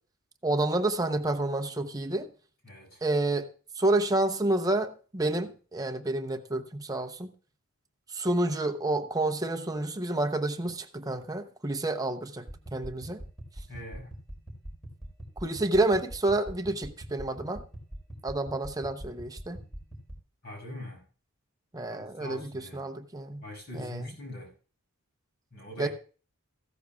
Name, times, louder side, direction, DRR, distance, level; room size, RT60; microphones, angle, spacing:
voice 1, 0.4-2.3 3.0-3.5 3.8-7.3 8.1-12.5 12.7-13.2 15.4-17.6 18.2-19.6 21.7-23.4 23.7-24.1 25.8-25.9, right 2 dB, 15° right, 6 dB, 0.7 m, -29 dB
voice 2, 2.6-3.0 13.7-14.1 20.4-21.0 21.9-22.8 23.4-24.5 25.5-25.9, equal, 45° left, 1 dB, 6.2 m, -42 dB
sound 1, 12.3-20.1, right 1 dB, ahead, 4.2 m, -44 dB
15.5 x 13.0 x 2.3 m, 0.39 s
head